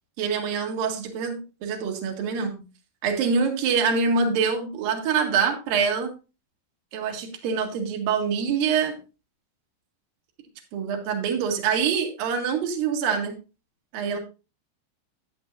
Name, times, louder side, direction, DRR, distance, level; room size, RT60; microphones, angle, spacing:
voice 1, 0.2-2.7 3.0-6.1 6.9-9.0 10.7-13.3 13.9-14.2, right 6 dB, 60° right, 3 dB, 3.1 m, -25 dB
11.5 x 9.9 x 2.6 m, 0.30 s
omnidirectional pair, 5.2 m